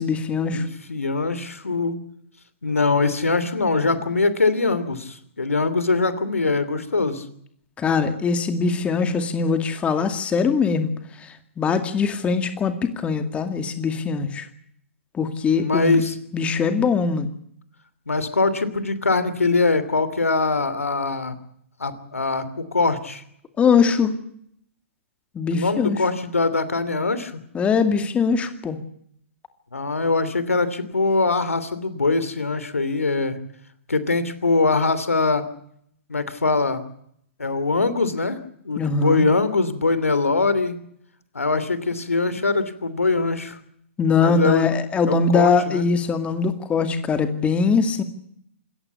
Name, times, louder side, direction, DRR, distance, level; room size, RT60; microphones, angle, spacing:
voice 1, 0.0-0.7 7.8-10.9 11.2-14.5 15.1-16.0 16.3-17.3 23.6-24.1 25.3-26.0 27.5-28.8 38.8-39.2 44.0-48.0, left 5 dB, 15° left, 8 dB, 2.3 m, -22 dB
voice 2, 0.5-2.0 2.6-7.2 15.6-16.2 18.1-21.4 21.8-23.2 25.5-27.4 29.7-33.4 33.9-35.4 36.1-36.8 37.4-38.4 38.6-40.8 41.3-43.6 44.2-44.7 45.1-45.9, left 3 dB, 90° left, 13 dB, 3.0 m, -22 dB
27.5 x 14.0 x 8.3 m, 0.69 s
hypercardioid pair, 125°, 7 cm